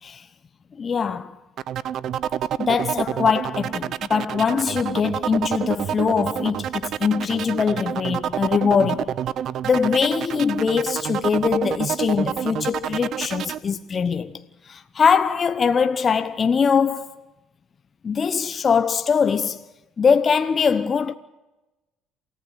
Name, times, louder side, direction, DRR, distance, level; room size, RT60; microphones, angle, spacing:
voice 1, 0.7-1.4 2.6-9.2 9.6-17.2 18.0-19.6 20.0-21.1, left 6 dB, 40° left, 1.0 m, -22 dB
sound 1, 1.6-13.6, right 10 dB, 60° right, 0.8 m, -28 dB
28.0 x 15.0 x 8.1 m
hypercardioid pair, 65°, 0 cm